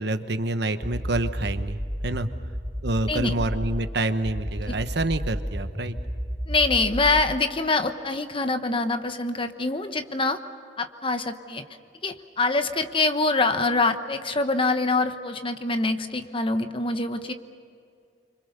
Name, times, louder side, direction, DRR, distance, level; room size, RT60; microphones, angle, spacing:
voice 1, 0.0-2.3 2.8-6.0, right 2 dB, 65° right, 9 dB, 1.1 m, -27 dB
sound 1, 0.8-3.8 4.2-7.3, equal, 15° right, 1.7 m, -31 dB
voice 2, 6.5-10.4 10.8-11.6 12.0-17.3, left 3 dB, 30° left, 8 dB, 1.1 m, -25 dB
26.0 x 25.5 x 6.8 m, 2.3 s
head